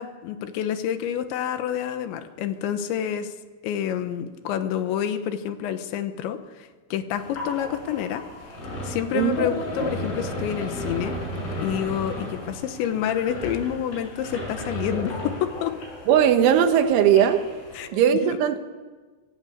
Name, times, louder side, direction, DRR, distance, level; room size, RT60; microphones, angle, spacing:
voice 1, 0.0-3.3 3.6-8.2 8.8-11.2 11.6-15.8 17.7-18.4, left 9 dB, 80° left, 9 dB, 3.4 m, -28 dB
sound 1, 7.2-17.9, equal, 55° left, 9.1 m, -34 dB
voice 2, 9.1-9.5 16.1-17.4 17.9-18.6, right 9 dB, 85° right, 8 dB, 3.8 m, -19 dB
26.0 x 17.0 x 8.1 m, 1.4 s
omnidirectional pair, 5.4 m